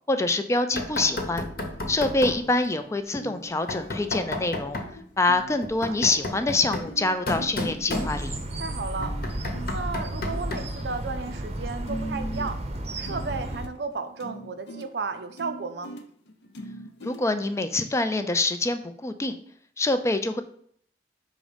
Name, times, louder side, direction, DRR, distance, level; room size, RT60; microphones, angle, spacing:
voice 1, 0.1-1.4 1.9-4.8 5.2-8.3 17.0-19.4 19.8-20.4, left 2 dB, 15° left, 9 dB, 0.4 m, -25 dB
sound 1, 0.7-2.8 3.2-3.5 3.7-11.3 11.6-17.7, equal, 70° left, 0.6 m, -43 dB
Knock, 0.8-2.5 3.7-5.0 5.6-8.5 9.0-10.8, left 2 dB, 55° left, 1.0 m, -32 dB
sound 2, 7.9-13.7, right 1 dB, 35° right, 0.7 m, -33 dB
voice 2, 8.6-9.2 9.7-12.6 13.0-16.0, right 4 dB, 70° right, 8 dB, 0.5 m, -33 dB
5.2 x 3.7 x 5.0 m, 0.63 s
head